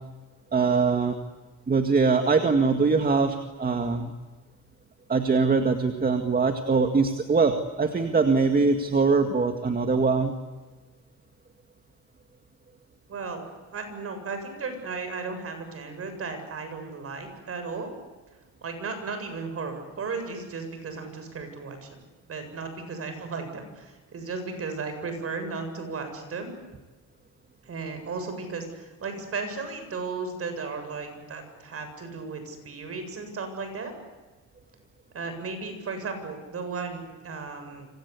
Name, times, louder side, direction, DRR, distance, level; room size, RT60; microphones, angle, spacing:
voice 1, 0.5-1.2 1.7-4.1 5.1-10.3, right 4 dB, 25° right, 6 dB, 2.1 m, -22 dB
voice 2, 13.1-13.4 13.7-17.9 18.6-22.0 22.3-26.5 27.7-33.9 35.1-37.9, right 4 dB, 45° right, 7 dB, 7.6 m, -35 dB
27.0 x 26.5 x 8.5 m, 1.3 s
cardioid pair, 125°, 34 cm